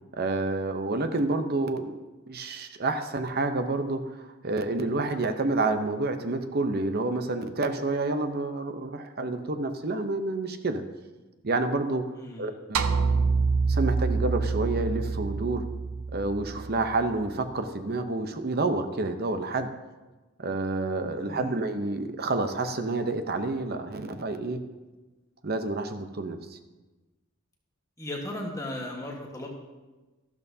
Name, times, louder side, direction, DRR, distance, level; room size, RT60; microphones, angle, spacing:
voice 1, 0.1-2.0 2.3-10.8 11.4-12.0 12.4-12.9 13.7-15.6 16.1-19.7 20.4-24.6 25.4-26.6, right 2 dB, 45° right, 8 dB, 0.8 m, -29 dB
voice 2, 12.1-12.5 21.2-21.5 28.0-29.6, left 1 dB, 15° left, -1 dB, 1.4 m, -36 dB
sound 1, 12.7-17.2, right 4 dB, 85° right, 0.6 m, -27 dB
13.0 x 12.0 x 2.8 m, 1.2 s
head